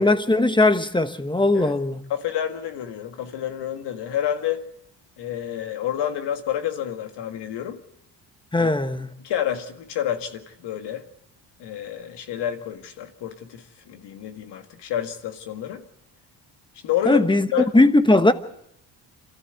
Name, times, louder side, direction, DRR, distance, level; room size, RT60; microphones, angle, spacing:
voice 1, 0.0-2.0 8.5-9.1 17.0-17.5 17.7-18.3, left 2 dB, 10° left, 1.2 m, -19 dB
voice 2, 2.1-4.6 5.2-7.8 8.6-8.7 9.2-11.1 11.6-15.8 16.8-17.3 17.5-17.7, left 10 dB, 75° left, 2.0 m, -29 dB
26.0 x 14.0 x 8.1 m
cardioid pair, 100°, 41 cm